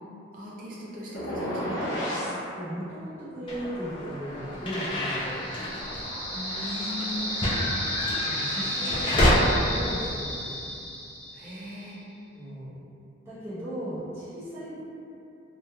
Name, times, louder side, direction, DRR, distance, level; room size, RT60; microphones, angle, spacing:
voice 1, 0.3-2.4 6.3-7.2 10.5-10.6 11.3-12.0, left 1 dB, 45° right, -6 dB, 0.5 m, -39 dB
sound 1, 1.1-2.4, equal, 75° left, 0.6 m, -30 dB
voice 2, 2.5-5.6 8.2-10.7 12.3-12.8 13.2-14.8, equal, 15° right, -14 dB, 0.9 m, -37 dB
sound 2, 3.5-9.3, left 1 dB, 25° left, 0.3 m, -29 dB
sound 3, 4.8-11.7, equal, 60° left, 1.0 m, -33 dB
3.0 x 2.2 x 2.2 m, 2.7 s
head